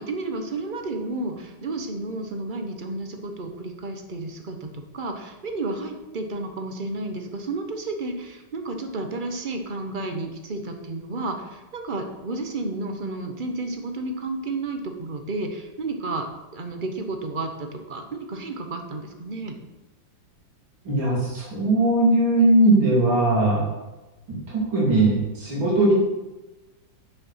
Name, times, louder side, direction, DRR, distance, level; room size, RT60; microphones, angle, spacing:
voice 1, 0.0-16.3 16.5-19.6, right 2 dB, 35° right, 5 dB, 1.0 m, -31 dB
voice 2, 20.9-23.6 24.3-24.4 24.7-25.9, right 2 dB, 85° right, -4 dB, 3.6 m, -19 dB
10.0 x 5.9 x 5.7 m, 1.1 s
omnidirectional pair, 2.1 m